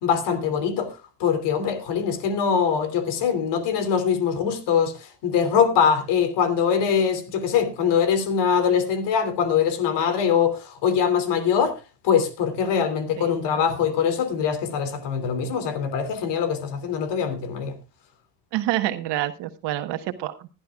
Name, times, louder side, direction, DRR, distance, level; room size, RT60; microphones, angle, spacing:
voice 1, 0.0-0.9 1.2-11.8 12.0-17.8, left 7 dB, 85° left, 2.9 m, -23 dB
voice 2, 13.2-13.6 18.5-20.5, right 14 dB, 90° right, 1.2 m, -28 dB
20.5 x 11.5 x 2.4 m
cardioid pair, 85°, 40 cm